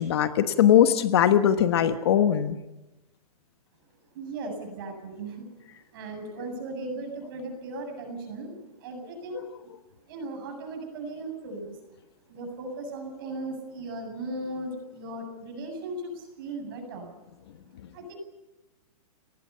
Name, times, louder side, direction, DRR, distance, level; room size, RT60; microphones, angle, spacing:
voice 1, 0.0-2.6, left 10 dB, 40° left, 9 dB, 1.2 m, -20 dB
voice 2, 4.1-5.5 5.9-9.7 10.1-11.8 12.3-17.1 17.9-18.2, right 2 dB, 35° right, 5 dB, 7.5 m, -37 dB
29.5 x 20.0 x 5.7 m, 1.0 s
hypercardioid pair, 180°, 20 cm